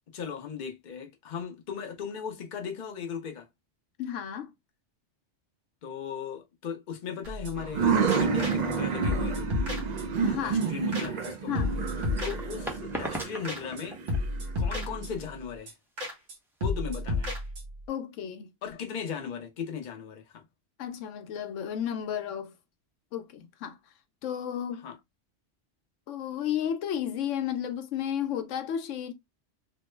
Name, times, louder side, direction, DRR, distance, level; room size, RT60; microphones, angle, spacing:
voice 1, 0.1-3.5 5.8-9.5 10.4-11.7 12.2-14.0 14.6-15.7 16.6-17.3 18.6-20.4 24.8-24.9, left 7 dB, 50° left, 0.7 m, -37 dB
voice 2, 4.0-4.5 10.2-10.6 11.5-11.7 17.9-18.5 20.8-22.6 23.1-23.8 24.2-24.9 26.1-29.1, left 9 dB, 90° left, 0.9 m, -33 dB
sound 1, 7.2-7.8 8.1-8.8 9.0-10.3 10.6-10.7 10.9-11.3 11.6-12.9 13.1-13.2 13.5-13.8 14.1-15.4 15.7-15.8 16.0-16.4 16.6-17.8, left 2 dB, 90° right, 1.3 m, -32 dB
sound 2, 7.6-15.1, right 6 dB, 60° right, 0.4 m, -30 dB
sound 3, 11.4-17.5, equal, 5° right, 0.4 m, -40 dB
3.0 x 2.0 x 3.2 m
omnidirectional pair, 1.2 m